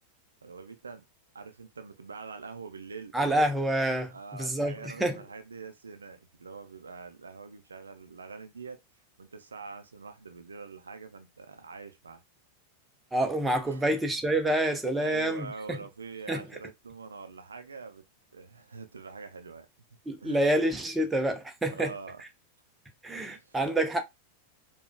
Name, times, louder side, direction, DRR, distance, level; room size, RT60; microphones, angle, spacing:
voice 1, 0.4-1.1 1.3-3.1 4.1-8.8 9.2-12.2 13.7-13.9 15.0-18.0 18.3-19.7 20.2-20.4 21.7-22.2 23.1-23.6, right 4 dB, 75° right, 0.5 m, -44 dB
voice 2, 3.1-5.2 13.1-15.8 16.3-16.5 20.1-21.9 23.0-24.0, right 1 dB, 10° right, 0.7 m, -27 dB
4.7 x 2.3 x 2.2 m
figure-of-eight pair, 90°, 0 cm